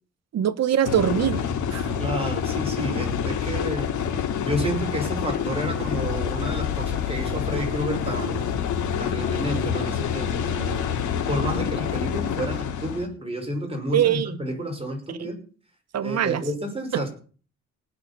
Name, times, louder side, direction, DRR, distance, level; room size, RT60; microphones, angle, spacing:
voice 1, 0.3-1.4 1.7-1.9 13.9-14.3 15.2-15.3 15.9-16.4 16.9-17.0, right 10 dB, 60° right, 13 dB, 1.3 m, -22 dB
sound 1, 0.8-13.1, left 8 dB, 75° left, 2.8 m, -27 dB
voice 2, 2.0-3.9 4.4-8.6 9.0-10.9 11.3-15.4 16.0-17.1, equal, 20° right, 3 dB, 5.5 m, -30 dB
18.5 x 6.6 x 6.9 m, 0.39 s
cardioid pair, 90°, 30 cm